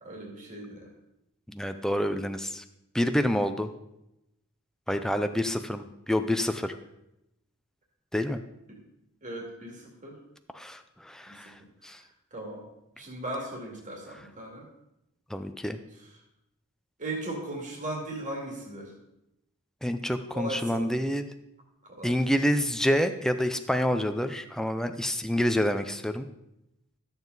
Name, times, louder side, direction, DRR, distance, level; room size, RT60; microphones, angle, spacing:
voice 1, 0.0-0.9 8.7-8.8 9.2-10.2 11.3-11.4 12.3-12.6 13.0-14.6 17.0-18.9 20.3-20.9 21.9-22.4, right 1 dB, 35° right, -1 dB, 2.2 m, -37 dB
voice 2, 1.5-2.6 2.9-3.7 4.9-6.7 8.1-8.4 10.5-11.5 11.8-12.0 15.3-15.8 19.8-21.3 22.0-26.3, equal, ahead, 8 dB, 0.5 m, -28 dB
13.0 x 7.2 x 3.9 m, 0.87 s
head